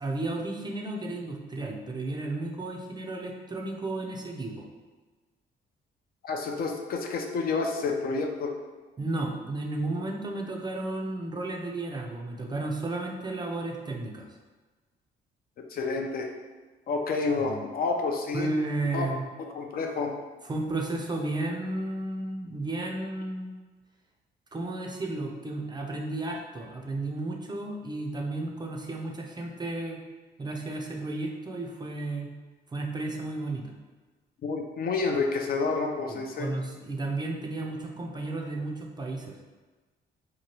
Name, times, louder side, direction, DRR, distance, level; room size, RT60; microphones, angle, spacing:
voice 1, 0.0-4.7 9.0-14.2 17.4-17.6 18.3-19.2 20.4-23.5 24.5-30.0 30.4-32.3 32.7-33.7 36.1-39.4, right 2 dB, 20° right, 0 dB, 0.4 m, -33 dB
voice 2, 6.2-8.5 15.7-16.3 16.9-18.5 18.9-19.1 19.4-20.1 34.4-36.5, left 4 dB, 50° left, 3 dB, 0.4 m, -29 dB
2.9 x 2.2 x 2.9 m, 1.3 s
cardioid pair, 90°, 20 cm